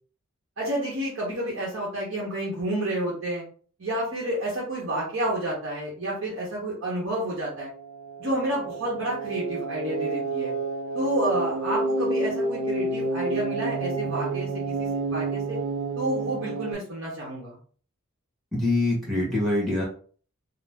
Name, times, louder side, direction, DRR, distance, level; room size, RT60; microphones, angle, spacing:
voice 1, 0.6-3.4 3.8-7.7 8.2-10.5 10.9-15.6 16.0-17.6, right 1 dB, 60° right, -5 dB, 0.9 m, -30 dB
sound 1, 7.3-16.7, right 3 dB, 85° right, 0.5 m, -29 dB
voice 2, 18.5-19.8, left 2 dB, ahead, -4 dB, 1.1 m, -24 dB
2.6 x 2.0 x 3.3 m, 0.43 s
head